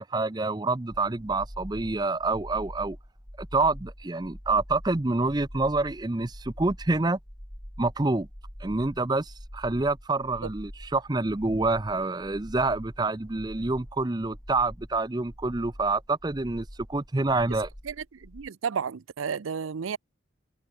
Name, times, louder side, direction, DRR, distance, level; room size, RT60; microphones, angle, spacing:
voice 1, 0.1-3.0 3.4-7.2 7.8-8.3 8.6-17.7, right 3 dB, 20° right, 0.5 m, -27 dB
sound 1, 0.9-18.5, equal, 10° left, 3.9 m, -44 dB
voice 2, 18.2-20.0, right 6 dB, 85° right, 0.5 m, -32 dB
head